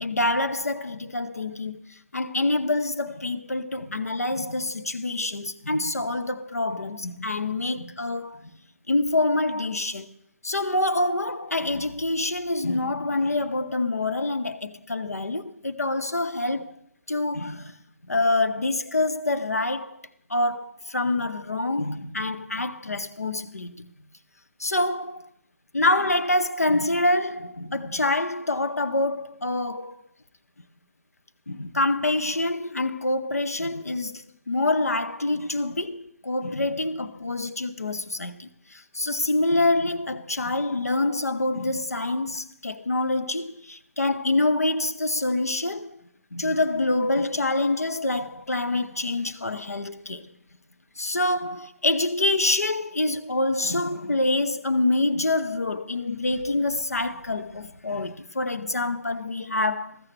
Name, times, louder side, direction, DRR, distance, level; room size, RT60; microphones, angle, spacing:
voice 1, 0.0-1.8 2.1-8.4 8.9-10.1 10.4-16.8 17.1-17.7 18.1-20.0 20.3-23.9 24.6-25.2 25.7-30.0 31.5-46.0 46.3-50.3 51.0-60.0, left 2 dB, 90° left, 0.6 m, -26 dB
15.0 x 13.0 x 3.3 m
figure-of-eight pair, 135°, 8 cm